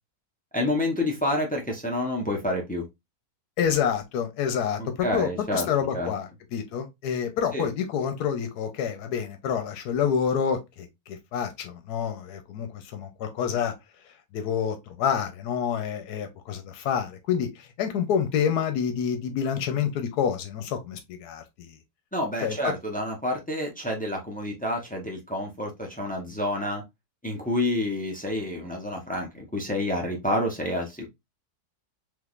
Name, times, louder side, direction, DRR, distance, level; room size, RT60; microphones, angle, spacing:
voice 1, 0.5-2.8 4.8-6.1 7.5-7.7 22.1-26.8 27.2-31.1, left 1 dB, 10° left, 0.4 m, -29 dB
voice 2, 3.6-13.7 14.3-21.8 22.4-22.6, left 7 dB, 85° left, 1.2 m, -28 dB
3.6 x 3.0 x 2.4 m
omnidirectional pair, 1.7 m